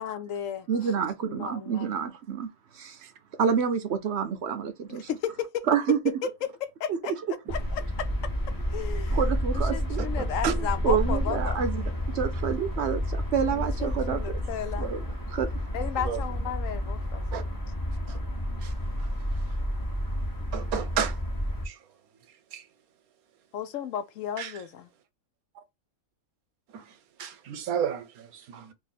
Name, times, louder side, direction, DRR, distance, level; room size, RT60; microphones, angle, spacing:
voice 1, 0.0-1.9 4.9-5.7 6.4-7.1 7.5-8.1 8.7-9.2 9.5-11.6 13.5-14.9 15.7-17.7 23.5-24.9, left 9 dB, 70° left, 0.9 m, -35 dB
voice 2, 0.7-2.5 2.7-3.0 3.4-5.1 5.7-6.0 6.9-7.0 9.1-10.0 10.4-11.8 12.1-14.2 14.8-15.0 15.3-15.5, right 7 dB, 60° right, 0.8 m, -28 dB
sound 1, 7.5-21.7, equal, 20° left, 0.7 m, -30 dB
voice 3, 10.2-10.5 16.0-16.2 17.3-17.4 18.1-18.2 18.6-18.7 20.5-21.2 21.7-21.8 22.5-22.6 24.4-24.5 26.7-26.8 27.2-28.7, right 8 dB, 90° right, 1.2 m, -32 dB
2.7 x 2.7 x 4.0 m
omnidirectional pair, 1.5 m